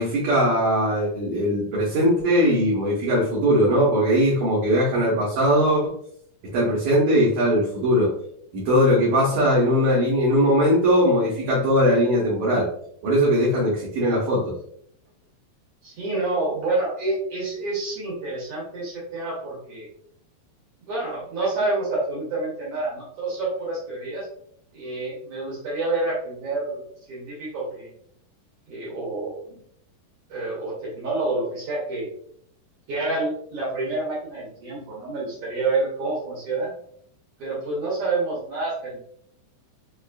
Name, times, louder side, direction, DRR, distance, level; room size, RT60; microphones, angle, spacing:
voice 1, 0.0-5.9 6.5-8.1 8.5-12.7 13.0-14.5, equal, 70° right, -6 dB, 1.9 m, -20 dB
voice 2, 15.8-19.9 20.9-24.3 24.7-26.8 27.1-27.9 28.7-29.6 30.3-32.1 32.9-36.7 37.4-39.0, right 2 dB, 90° right, -6 dB, 1.3 m, -28 dB
5.5 x 2.5 x 2.3 m, 0.67 s
omnidirectional pair, 4.2 m